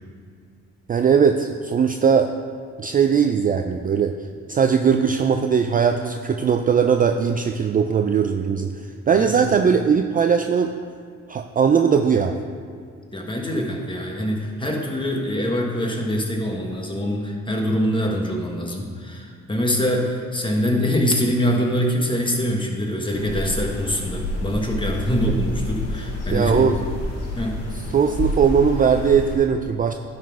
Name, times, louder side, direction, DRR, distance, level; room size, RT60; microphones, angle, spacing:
voice 1, 0.9-2.3 2.8-4.1 4.5-10.7 11.3-12.4 26.3-26.8 27.9-29.9, right 6 dB, 30° right, 6 dB, 0.4 m, -19 dB
voice 2, 9.1-9.6 13.1-26.6 27.4-27.5, equal, 15° left, 0 dB, 1.4 m, -24 dB
sound 1, 23.1-29.3, left 2 dB, 55° left, 2.1 m, -29 dB
11.0 x 4.2 x 4.7 m, 2.1 s
cardioid pair, 90°, 30 cm